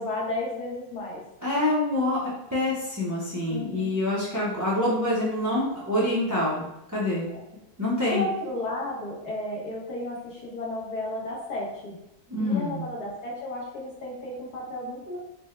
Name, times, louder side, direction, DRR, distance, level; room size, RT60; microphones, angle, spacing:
voice 1, 0.0-1.2 3.5-3.9 8.1-12.0 12.4-15.2, left 1 dB, 75° left, -4 dB, 1.6 m, -33 dB
voice 2, 1.4-2.2 2.5-7.3 7.8-8.2 12.3-12.8, left 1 dB, 25° right, -6 dB, 0.4 m, -26 dB
4.3 x 2.1 x 3.1 m, 0.86 s
omnidirectional pair, 1.7 m